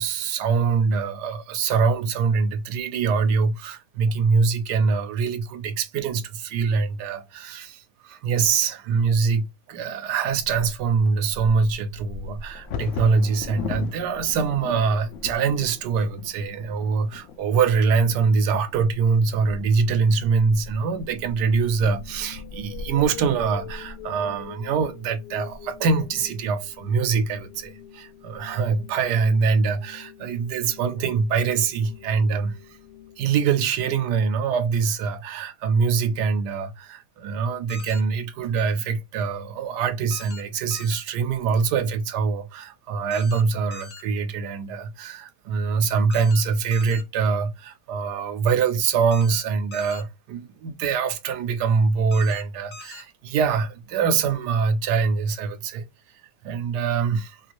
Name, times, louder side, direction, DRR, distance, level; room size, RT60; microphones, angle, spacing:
voice 1, 0.0-32.6 33.2-55.8 56.4-57.4, right 5 dB, 90° right, 1.2 m, -24 dB
Bird vocalization bird call bird song / Wind / Thunder, 10.3-26.2 26.8-26.9 27.2-27.6 28.1-28.6, left 4 dB, 65° left, 0.7 m, -39 dB
sound 1, 21.9-34.0, left 12 dB, 85° left, 1.2 m, -45 dB
sound 2, 37.7-38.0 40.1-40.4 40.7-41.0 43.1-43.4 43.7-44.0 46.1-46.4 46.7-47.0 49.1-49.4 49.7-50.0 52.1-52.4 52.7-53.0, left 4 dB, 50° left, 1.2 m, -42 dB
3.0 x 2.5 x 2.9 m
omnidirectional pair, 1.8 m